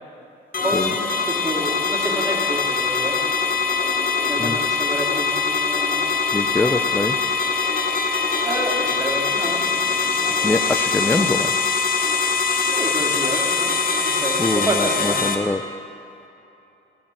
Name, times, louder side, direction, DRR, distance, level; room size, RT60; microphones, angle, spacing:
sound 1, 0.5-15.3, left 4 dB, 45° left, 1.3 m, -22 dB
voice 1, 0.6-3.2 4.2-6.1 8.4-9.6 9.9-10.2 11.0-11.4 12.7-13.7 14.0-15.4, right 1 dB, 15° right, -2 dB, 2.7 m, -29 dB
voice 2, 6.3-7.2 10.4-11.7 14.4-15.6, left 2 dB, 10° left, 8 dB, 0.4 m, -24 dB
15.5 x 5.8 x 8.4 m, 2.9 s
cardioid pair, 90°, 20 cm